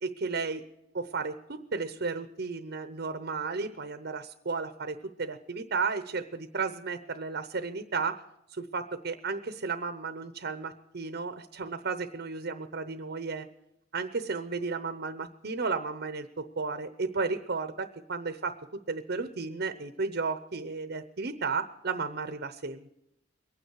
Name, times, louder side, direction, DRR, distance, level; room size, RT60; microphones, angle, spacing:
voice 1, 0.0-0.6 0.9-8.2 8.5-13.5 13.9-18.5 18.9-22.9, right 4 dB, 55° right, 10 dB, 0.8 m, -33 dB
23.0 x 9.5 x 4.7 m, 0.84 s
head